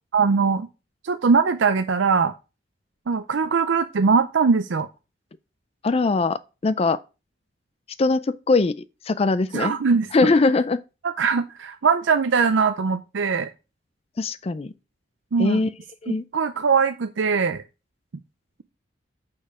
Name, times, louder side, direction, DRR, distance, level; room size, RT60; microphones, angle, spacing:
voice 1, 0.1-0.7 1.0-2.3 3.1-4.9 9.5-10.3 11.0-13.5 15.3-15.6 16.1-17.6, right 5 dB, 85° right, 0.5 m, -21 dB
voice 2, 5.8-7.0 8.0-8.8 9.1-9.7 10.1-10.8 14.2-14.7 15.4-15.7 16.0-16.2, left 3 dB, 35° left, 0.4 m, -21 dB
6.5 x 5.7 x 4.9 m
head